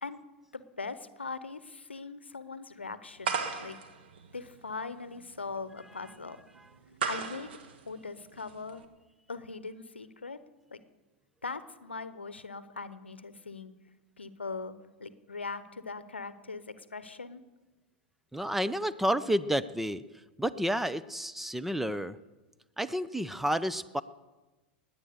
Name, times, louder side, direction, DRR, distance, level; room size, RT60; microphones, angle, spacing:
voice 1, 0.5-3.8 4.3-6.4 7.1-7.5 7.8-8.8 9.3-10.4 10.7-10.8 11.4-13.7 14.2-14.7 15.0-17.4, left 4 dB, 90° left, 14 dB, 0.8 m, -40 dB
sound 1, 3.2-8.9, right 5 dB, 65° right, 1.7 m, -37 dB
voice 2, 18.3-20.0 20.4-22.2 22.8-24.0, equal, 5° right, 14 dB, 0.6 m, -30 dB
20.0 x 8.8 x 6.7 m, 1.2 s
figure-of-eight pair, 90°, 6 cm